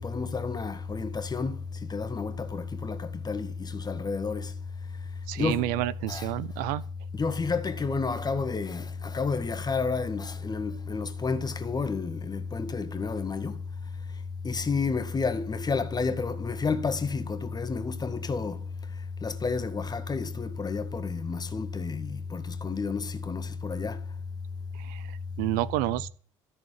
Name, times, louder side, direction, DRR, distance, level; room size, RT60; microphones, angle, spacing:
voice 1, 0.0-1.6 1.9-4.5 5.4-5.6 6.1-6.3 7.1-13.5 14.4-18.6 19.2-24.0, left 4 dB, 25° left, 1.8 m, -30 dB
voice 2, 5.3-6.8 24.7-26.1, right 16 dB, 65° right, 0.8 m, -30 dB
14.0 x 6.6 x 9.6 m
figure-of-eight pair, 60°, 16 cm